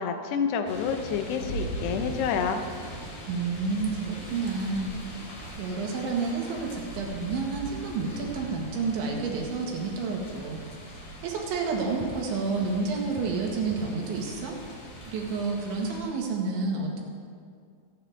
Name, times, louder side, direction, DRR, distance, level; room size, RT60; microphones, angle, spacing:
voice 1, 0.0-2.6, left 6 dB, 75° left, 6 dB, 2.9 m, -28 dB
sound 1, 0.7-16.0, right 1 dB, 40° left, 4.1 m, -41 dB
voice 2, 3.3-4.9 5.6-10.6 11.2-14.6 15.1-17.0, right 4 dB, 85° right, 0 dB, 4.2 m, -30 dB
27.5 x 10.0 x 3.6 m, 2.1 s
omnidirectional pair, 5.1 m